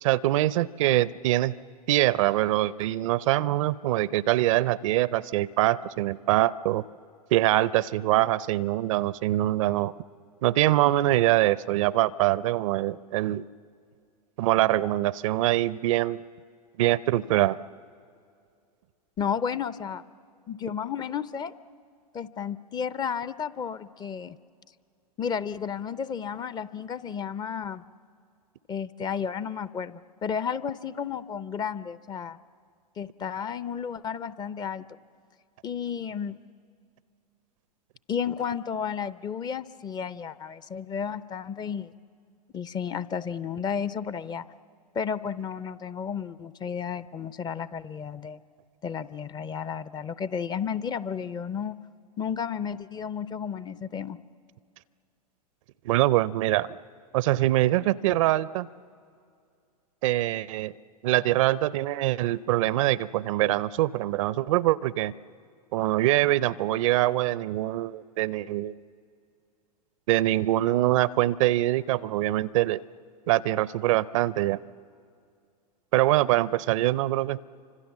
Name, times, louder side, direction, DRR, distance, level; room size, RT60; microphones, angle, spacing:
voice 1, 0.0-1.5 1.9-6.8 7.3-9.9 10.4-13.4 14.4-16.2 16.8-17.6 55.8-56.7 57.1-58.7 60.0-60.7 61.0-65.1 65.7-68.8 70.1-72.8 73.3-74.6 75.9-77.4, right 15 dB, 55° right, 20 dB, 0.6 m, -24 dB
voice 2, 19.2-20.0 20.5-21.5 22.1-24.4 25.2-27.8 28.7-32.4 33.0-34.9 35.6-36.4 38.1-41.9 42.5-44.4 44.9-48.4 48.8-51.8 52.2-54.2, left 7 dB, 20° left, 17 dB, 0.6 m, -32 dB
29.0 x 25.5 x 7.3 m, 2.3 s
hypercardioid pair, 100°, 20 cm